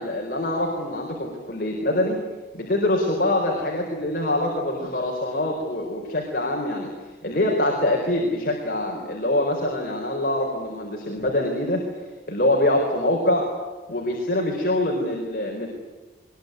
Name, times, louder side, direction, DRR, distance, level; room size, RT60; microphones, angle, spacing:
voice 1, 0.0-2.2 2.5-11.8 12.3-13.5 13.9-15.7, left 1 dB, 50° left, 0 dB, 4.6 m, -24 dB
22.0 x 22.0 x 9.6 m, 1.3 s
head